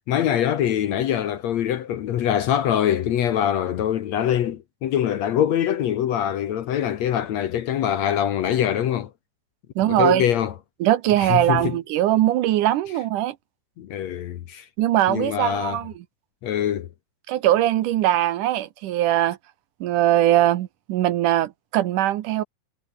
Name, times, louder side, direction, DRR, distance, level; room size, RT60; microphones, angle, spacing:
voice 1, 0.1-9.1 9.9-10.5 11.2-11.7 13.8-14.7 15.1-15.8 16.4-16.9, left 10 dB, 65° left, 2.0 m, -23 dB
voice 2, 9.8-10.3 10.8-13.4 14.8-15.9 17.3-19.4 19.8-22.4, right 13 dB, 70° right, 2.4 m, -21 dB
omnidirectional pair, 4.0 m